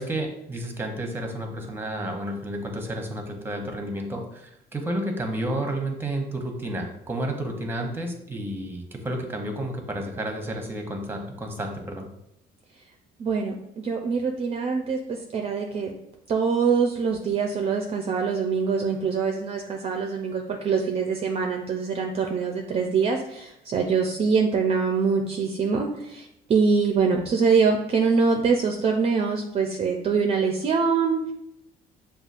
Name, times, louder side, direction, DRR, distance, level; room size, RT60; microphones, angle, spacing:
voice 1, 0.0-12.1, right 1 dB, 15° right, 3 dB, 0.8 m, -31 dB
voice 2, 13.2-15.9 16.3-31.3, right 5 dB, 35° right, 3 dB, 0.4 m, -24 dB
6.6 x 2.3 x 2.5 m, 0.79 s
cardioid pair, 110°, 17 cm